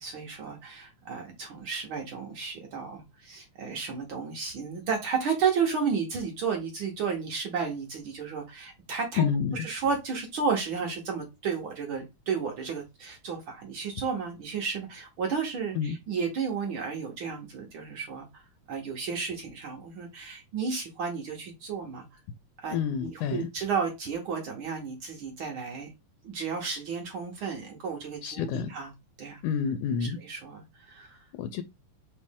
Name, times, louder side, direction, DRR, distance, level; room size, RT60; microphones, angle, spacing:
voice 1, 0.0-9.2 9.5-18.4 18.7-22.0 22.6-25.9 26.2-28.9 29.2-29.4 30.0-31.2, right 5 dB, 75° right, 1.1 m, -32 dB
voice 2, 9.2-9.6 15.8-16.0 22.7-23.5 28.2-28.7 29.4-30.2 31.4-31.6, left 7 dB, 90° left, 2.0 m, -28 dB
4.3 x 3.1 x 3.4 m
omnidirectional pair, 3.4 m